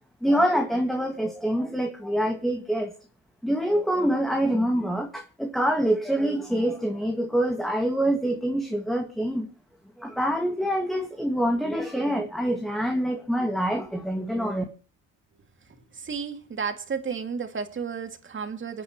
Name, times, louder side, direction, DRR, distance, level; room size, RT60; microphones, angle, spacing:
voice 1, 0.2-2.9 3.4-9.5 10.0-14.6, equal, ahead, 2.0 m, -25 dB
voice 2, 15.9-18.8, right 6 dB, 40° right, 2.4 m, -32 dB
26.5 x 9.8 x 3.1 m
cardioid pair, 90°, 30 cm